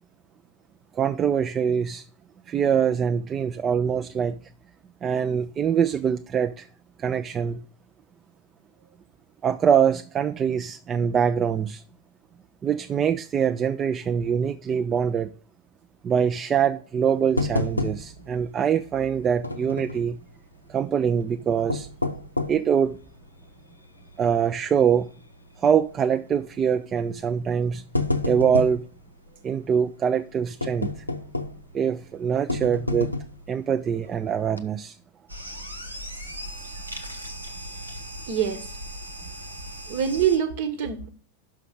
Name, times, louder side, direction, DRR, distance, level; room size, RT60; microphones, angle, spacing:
voice 1, 0.9-2.1 2.5-4.4 5.0-6.7 7.0-7.6 9.4-11.8 12.6-15.3 16.0-20.2 20.7-21.9 22.5-23.0 24.2-25.1 25.6-27.8 28.3-28.8 29.4-31.0 31.7-33.1 33.5-35.0, right 7 dB, 25° right, 0.3 m, -24 dB
sound 1, 17.4-18.3 18.6-18.7 19.4-20.1 21.5-22.7 23.3-23.4 24.0-24.3 24.6-24.7 25.8-26.1 27.0-27.2 27.6-28.9 30.6-31.7 32.5-33.5 34.0-34.1 34.5-34.6, left 2 dB, 85° left, 0.6 m, -28 dB
sound 2, 35.3-40.4, equal, 90° right, 1.2 m, -38 dB
voice 2, 38.3-38.7 39.9-41.1, right 8 dB, 50° right, 1.0 m, -25 dB
5.9 x 5.8 x 6.4 m
figure-of-eight pair, 90°, 0 cm